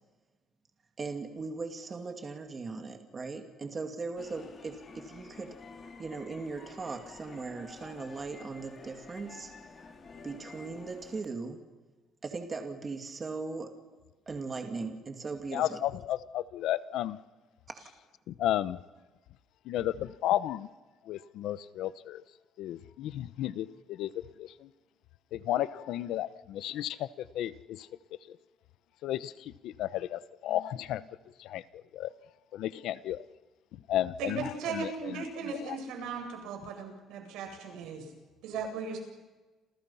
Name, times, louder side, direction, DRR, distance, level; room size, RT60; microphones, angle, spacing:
voice 1, 1.0-5.5 6.0-9.5 10.2-11.6 12.2-13.7 14.3-15.8 17.7-17.9, right 4 dB, 20° right, 5 dB, 2.4 m, -39 dB
sound 1, 4.2-11.2, left 4 dB, 30° left, 2.9 m, -50 dB
voice 2, 15.5-17.2 18.3-18.8 19.6-20.7 21.1-22.2 22.6-24.7 25.3-27.9 28.3-28.4 29.0-31.0 31.4-32.1 32.5-33.3 33.7-35.8, left 12 dB, 65° left, 15 dB, 0.9 m, -33 dB
voice 3, 34.2-38.1 38.4-39.0, right 5 dB, 85° right, 4 dB, 7.9 m, -37 dB
29.5 x 28.5 x 5.7 m, 1.2 s
cardioid pair, 170°, 0 cm